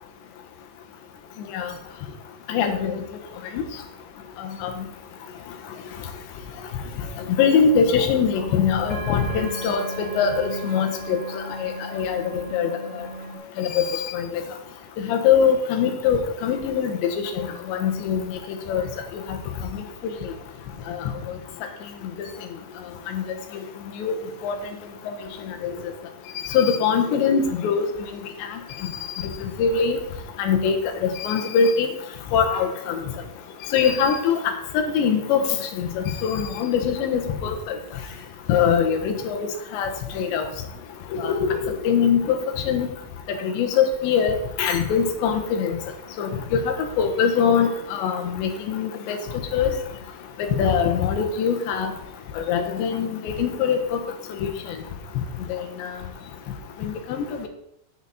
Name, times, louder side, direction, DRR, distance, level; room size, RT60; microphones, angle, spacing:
voice 1, 2.5-3.0 3.6-3.7 4.6-4.7 7.4-11.2 11.6-12.8 13.6-14.3 15.0-18.4 18.7-18.9 19.3-19.4 20.9-21.1 23.1-23.2 24.0-24.1 24.4-24.6 25.6-25.7 26.5-27.9 29.6-30.0 30.4-30.8 31.0-31.9 32.3-33.0 33.7-34.4 34.8-37.6 38.5-39.5 39.7-39.9 40.2-40.5 41.2-42.4 42.7-42.9 43.4-45.8 46.2-46.6 47.0-49.2 49.5-49.7 50.6-51.9 52.4-54.0 54.4-54.5 55.8-55.9 56.8-57.2, left 6 dB, 75° left, 5 dB, 3.5 m, -22 dB
sound 1, 7.0-13.4, right 2 dB, 30° left, 2.6 m, -37 dB
11.0 x 9.1 x 4.2 m, 0.76 s
omnidirectional pair, 5.3 m